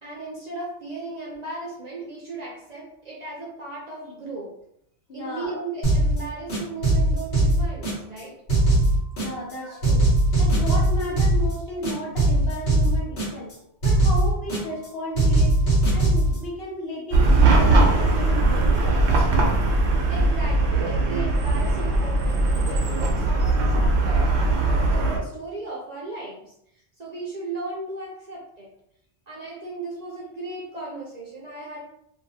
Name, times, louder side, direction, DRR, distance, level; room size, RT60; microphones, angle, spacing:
voice 1, 0.0-4.5 5.1-8.4 9.5-9.8 20.1-26.5 27.0-28.7 29.3-31.8, right 3 dB, 50° right, -4 dB, 0.5 m, -36 dB
voice 2, 5.1-5.6 9.2-10.1 10.4-13.5 13.8-15.5 15.9-19.1, equal, 65° left, -2 dB, 1.0 m, -34 dB
sound 1, 5.8-6.2 6.5-8.2 8.5-9.5 9.8-11.5 11.8-13.5 13.8-14.9 15.2-16.4, right 1 dB, 85° left, 1.4 m, -20 dB
Chatter / Car passing by / Traffic noise roadway noise, 17.1-25.2, right 2 dB, 85° right, 0.9 m, -20 dB
2.6 x 2.3 x 2.6 m, 0.74 s
omnidirectional pair, 1.1 m